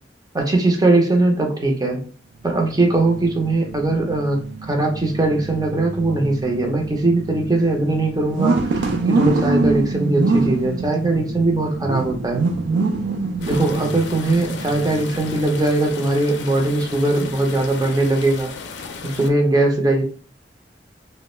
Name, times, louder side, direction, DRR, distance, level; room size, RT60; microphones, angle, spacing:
voice 1, 0.3-2.0 2.4-12.5 13.5-18.5 19.0-20.0, right 2 dB, 20° right, 2 dB, 0.5 m, -20 dB
sound 1, 2.4-15.8, right 3 dB, 75° right, 0.3 m, -25 dB
sound 2, 13.4-19.3, left 5 dB, 75° left, 0.4 m, -35 dB
2.2 x 2.0 x 3.0 m, 0.40 s
head